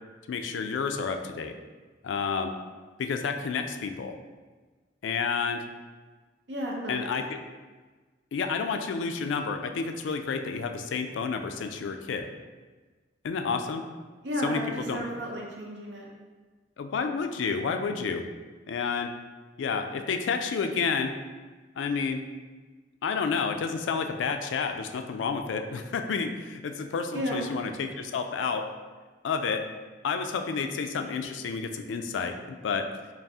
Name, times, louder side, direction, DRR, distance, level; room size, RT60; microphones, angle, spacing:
voice 1, 0.3-1.5 2.0-2.5 3.0-4.1 5.0-5.6 6.9-7.2 8.3-12.3 13.2-13.9 14.4-15.0 16.8-18.2 18.7-19.1 19.6-21.1 21.8-22.2 23.0-28.7 29.2-29.6 30.0-32.9, left 5 dB, 90° left, 7 dB, 0.3 m, -30 dB
voice 2, 6.5-7.1 14.2-16.1 27.1-27.5, equal, 70° right, -2 dB, 0.8 m, -33 dB
4.0 x 2.3 x 3.5 m, 1.4 s
head